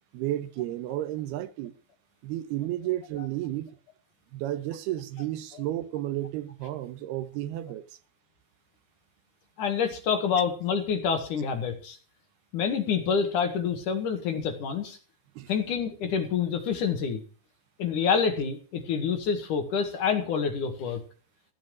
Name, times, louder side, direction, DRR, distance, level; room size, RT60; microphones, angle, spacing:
voice 1, 0.1-1.7 2.2-3.7 4.3-8.0 15.4-15.5, right 14 dB, 85° right, 2.9 m, -32 dB
voice 2, 9.6-12.0 12.5-15.0 15.5-17.2 17.8-21.0, left 6 dB, 60° left, 3.1 m, -27 dB
15.5 x 8.6 x 6.3 m
omnidirectional pair, 4.5 m